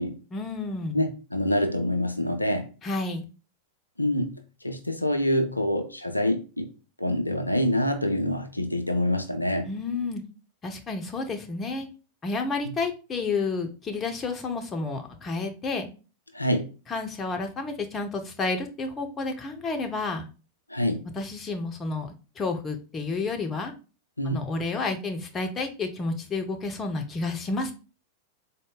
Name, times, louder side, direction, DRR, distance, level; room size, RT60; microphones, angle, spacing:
voice 1, 0.3-1.1 2.8-3.2 9.7-10.2 10.6-11.9 12.2-15.9 16.9-20.3 21.1-23.7 24.2-27.7, left 3 dB, 20° left, 0.6 m, -30 dB
voice 2, 0.9-2.7 4.0-6.7 7.0-9.7 16.3-16.7 20.7-21.0 24.2-24.5, left 1 dB, 85° left, 0.4 m, -26 dB
3.8 x 2.1 x 3.6 m
figure-of-eight pair, 90°, 0 cm